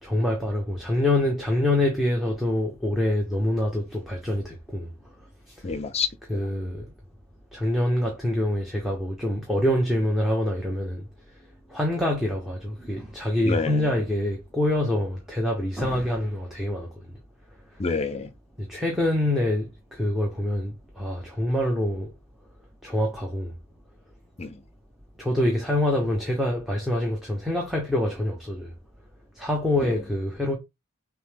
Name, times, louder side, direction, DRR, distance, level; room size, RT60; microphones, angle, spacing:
voice 1, 0.0-4.9 6.3-6.9 7.5-11.0 11.7-16.9 18.6-22.1 22.8-23.5 25.2-28.7 29.4-30.6, left 1 dB, ahead, 0.8 m, -25 dB
voice 2, 5.6-6.4 13.5-13.9 17.8-18.3 24.4-24.6 29.8-30.0, left 4 dB, 30° left, 0.5 m, -28 dB
6.1 x 2.1 x 3.4 m
head